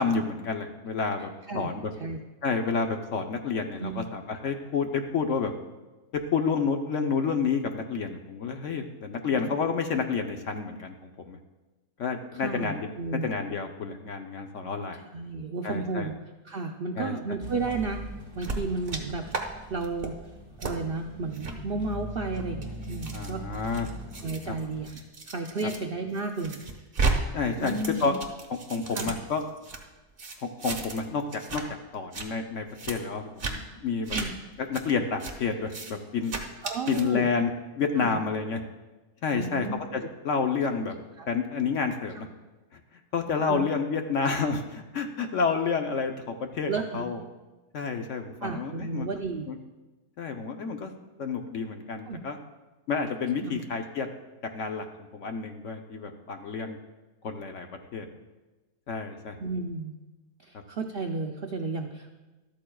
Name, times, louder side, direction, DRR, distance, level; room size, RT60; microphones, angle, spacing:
voice 1, 0.0-1.9 2.4-5.5 6.1-11.4 12.0-12.9 13.2-15.0 15.6-16.1 17.0-17.2 23.1-23.9 24.5-24.6 27.3-28.1 28.7-29.4 30.6-31.6 31.9-34.2 34.6-36.3 36.9-37.5 37.8-38.6 39.2-39.7 39.9-40.9 41.3-42.3 42.7-42.8 43.1-47.2 47.7-49.1 49.5-49.6 50.2-50.9 51.2-52.4 52.9-54.1 54.4-54.9 55.1-56.8 57.2-57.7 57.9-58.1 58.9-59.4 60.5-60.6, left 5 dB, 60° left, 5 dB, 1.0 m, -29 dB
voice 2, 12.3-13.3 15.1-16.1 16.4-18.0 18.4-19.3 19.7-20.2 20.6-23.4 24.2-26.6 27.6-28.1 29.0-29.1 34.1-34.3 36.6-37.3 38.0-38.2 39.3-39.8 41.2-41.3 43.4-43.6 46.7-47.1 48.4-49.5 52.1-52.2 53.4-53.6 59.4-59.9 60.4-62.1, right 3 dB, 65° right, 3 dB, 0.5 m, -33 dB
sound 1, 17.4-24.9, right 1 dB, 15° right, 2.6 m, -41 dB
sound 2, 18.4-19.0 19.3-19.4 19.8-20.1 20.6-20.7 21.3-21.5 22.2-25.8 26.1-27.1 27.4-29.8 30.2-31.0 31.3-31.6 31.9-32.3 32.7-32.9 33.4-33.5 34.0-34.3 34.7-34.8 35.2-35.3 35.7-35.9 36.2-37.0, right 4 dB, 40° right, 1.2 m, -33 dB
13.0 x 12.5 x 2.3 m, 1.1 s
omnidirectional pair, 1.7 m